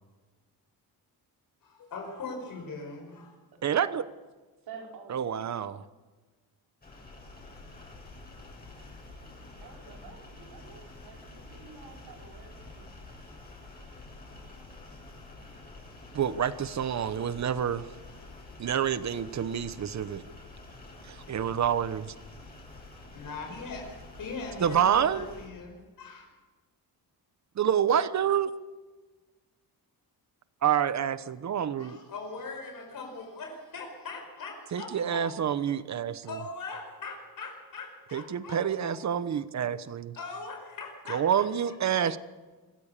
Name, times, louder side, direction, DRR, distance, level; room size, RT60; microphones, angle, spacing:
voice 1, 1.6-3.4 23.1-23.9 24.2-26.3 31.8-35.2 36.2-38.9 40.1-41.5 41.9-42.0, left 3 dB, 55° left, 2 dB, 5.4 m, -41 dB
voice 2, 3.6-4.0 5.1-5.8 16.1-17.9 18.6-20.2 21.1-22.1 24.6-25.3 27.6-28.5 30.6-32.0 34.7-36.3 38.1-40.2 41.1-42.2, right 9 dB, 45° right, 14 dB, 1.1 m, -28 dB
voice 3, 4.7-5.5 9.6-13.0, right 5 dB, 75° right, 0 dB, 5.4 m, -48 dB
sound 1, 6.8-25.5, left 2 dB, 25° left, 7.5 m, -48 dB
26.5 x 16.0 x 6.8 m, 1.3 s
cardioid pair, 140°, 39 cm